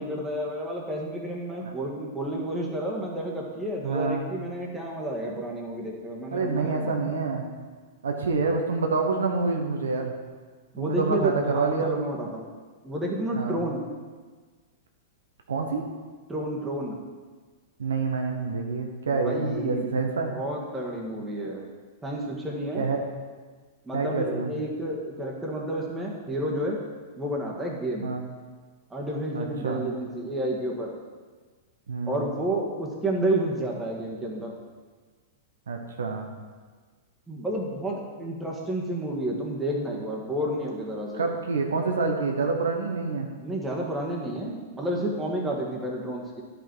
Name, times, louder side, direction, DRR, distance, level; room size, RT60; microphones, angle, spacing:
voice 1, 0.0-7.2 10.7-12.5 12.8-13.8 16.3-17.0 19.1-19.9 20.3-21.7 22.0-22.9 23.8-26.8 27.2-28.1 28.9-30.9 32.1-34.5 37.3-41.4 43.4-46.4, right 1 dB, 10° right, -2 dB, 1.7 m, -30 dB
voice 2, 3.8-4.3 6.3-7.5 8.0-10.1 10.8-11.9 13.3-13.6 15.5-15.8 17.8-20.3 22.7-23.0 23.9-24.5 28.0-28.2 29.3-29.8 31.9-32.2 35.7-36.3 41.2-43.3, right 4 dB, 80° right, 3 dB, 1.0 m, -27 dB
11.0 x 5.2 x 4.6 m, 1.4 s
hypercardioid pair, 105°, 0 cm